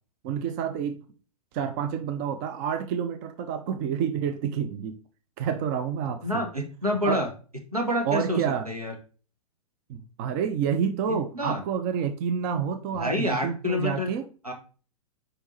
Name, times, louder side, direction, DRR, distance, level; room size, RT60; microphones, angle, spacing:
voice 1, 0.2-1.0 1.5-5.0 5.4-6.4 7.0-7.2 8.0-8.7 9.9-14.3, right 7 dB, 35° right, 0.6 m, -28 dB
voice 2, 6.2-7.3 7.7-8.9 11.1-11.6 12.9-14.1 14.4-14.5, left 1 dB, 85° right, 1.8 m, -28 dB
5.1 x 4.5 x 4.2 m
figure-of-eight pair, 105°, 19 cm